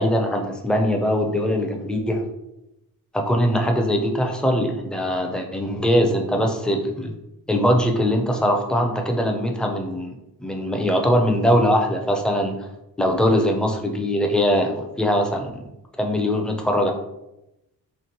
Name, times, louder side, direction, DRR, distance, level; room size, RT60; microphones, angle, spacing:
voice 1, 0.0-2.2 3.1-7.1 7.5-12.6 13.0-15.7 16.0-16.9, equal, ahead, 2 dB, 0.4 m, -21 dB
4.4 x 2.9 x 2.9 m, 0.90 s
wide cardioid pair, 115°, 38 cm